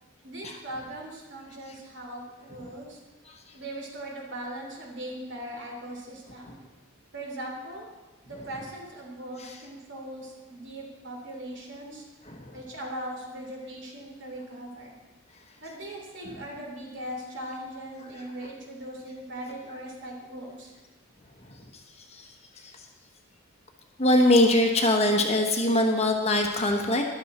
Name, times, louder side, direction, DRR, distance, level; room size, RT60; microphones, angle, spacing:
voice 1, 0.2-3.0 3.5-6.6 7.1-7.9 8.2-12.0 12.5-14.9 15.6-20.7, right 1 dB, 55° right, 0 dB, 2.8 m, -39 dB
voice 2, 24.0-27.0, left 1 dB, 30° left, 3 dB, 1.1 m, -22 dB
13.5 x 11.0 x 4.3 m, 1.2 s
head